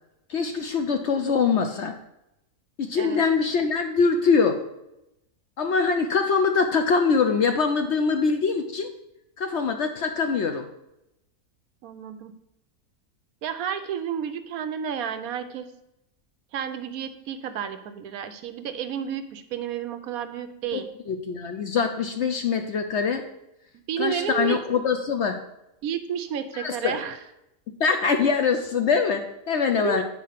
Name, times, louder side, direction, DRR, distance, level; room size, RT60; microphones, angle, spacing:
voice 1, 0.3-1.9 2.8-4.6 5.6-8.9 9.4-10.7 20.7-23.2 24.0-25.4 26.6-27.0 27.8-30.0, left 5 dB, 60° left, 6 dB, 0.8 m, -23 dB
voice 2, 11.8-12.3 13.4-15.7 16.5-20.9 23.9-24.6 25.8-27.2 29.7-30.0, right 8 dB, 70° right, 10 dB, 1.1 m, -31 dB
8.4 x 4.3 x 5.7 m, 0.86 s
omnidirectional pair, 1.6 m